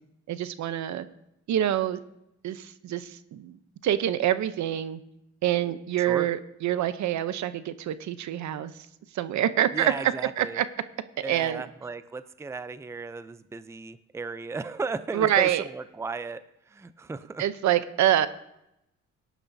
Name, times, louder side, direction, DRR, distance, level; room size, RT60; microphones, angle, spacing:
voice 1, 0.3-1.1 1.5-2.0 2.4-3.6 3.8-5.0 5.4-8.7 9.1-10.7 11.2-11.6 15.1-15.6 17.4-18.3, right 11 dB, 70° right, 13 dB, 0.8 m, -26 dB
voice 2, 6.0-6.3 9.7-10.6 11.2-17.4, right 4 dB, 10° right, 13 dB, 0.5 m, -35 dB
18.0 x 10.5 x 2.7 m, 0.83 s
cardioid pair, 90°, 30 cm